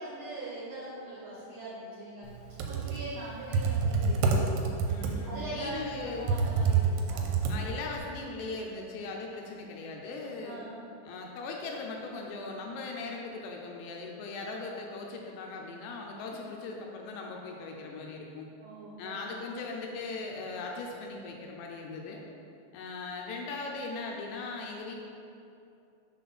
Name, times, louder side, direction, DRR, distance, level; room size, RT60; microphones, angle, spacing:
voice 1, 0.0-2.3 2.7-4.9 5.3-7.3 10.4-10.8 18.6-19.2, right 2 dB, 70° right, -8 dB, 2.7 m, -41 dB
Computer keyboard, 2.4-8.0, right 4 dB, 85° right, 3.0 m, -28 dB
voice 2, 4.9-6.3 7.5-10.6 11.1-18.5 19.0-22.2 22.7-25.0, left 3 dB, 80° left, 0 dB, 2.6 m, -39 dB
6.6 x 4.2 x 5.6 m, 2.7 s
omnidirectional pair, 5.4 m